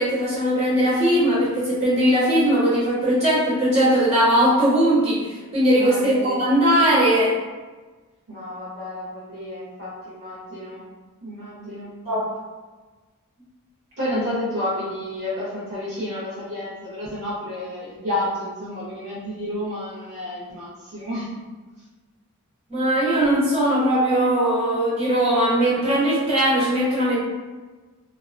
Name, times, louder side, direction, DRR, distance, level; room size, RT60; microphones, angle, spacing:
voice 1, 0.0-5.2 5.5-7.3 12.1-12.2 22.7-27.2, right 1 dB, 30° right, -8 dB, 1.0 m, -19 dB
voice 2, 5.8-6.4 8.3-10.8 11.2-11.9 14.0-21.3, left 1 dB, 55° right, -9 dB, 0.6 m, -30 dB
2.4 x 2.1 x 2.3 m, 1.3 s
head